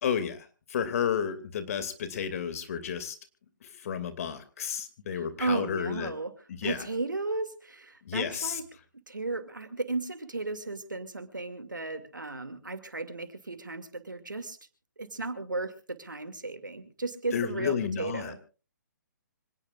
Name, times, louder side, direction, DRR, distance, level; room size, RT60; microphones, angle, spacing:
voice 1, 0.0-3.2 3.6-6.1 6.5-6.9 8.0-8.6 17.3-18.4, left 7 dB, 50° left, 10 dB, 2.5 m, -32 dB
voice 2, 5.1-6.3 6.6-8.6 9.1-14.6 15.0-18.4, right 3 dB, 90° right, 9 dB, 2.5 m, -35 dB
26.0 x 17.5 x 2.5 m, 0.35 s
figure-of-eight pair, 135°, 10 cm